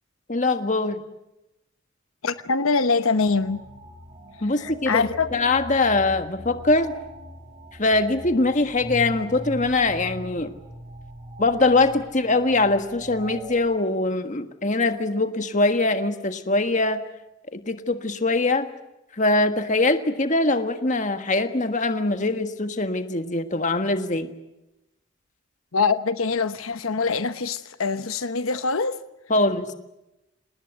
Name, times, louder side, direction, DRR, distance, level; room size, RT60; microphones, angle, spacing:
voice 1, 0.3-1.0 4.4-5.0 5.3-6.9 7.8-10.5 11.4-17.0 17.5-18.7 19.2-24.3 29.3-29.7, left 2 dB, 35° left, 1.6 m, -22 dB
voice 2, 2.2-3.6 4.4-5.3 25.7-29.0, left 4 dB, 90° left, 1.0 m, -24 dB
sound 1, 3.3-13.6, equal, 30° right, 6.0 m, -41 dB
27.0 x 20.0 x 8.0 m
head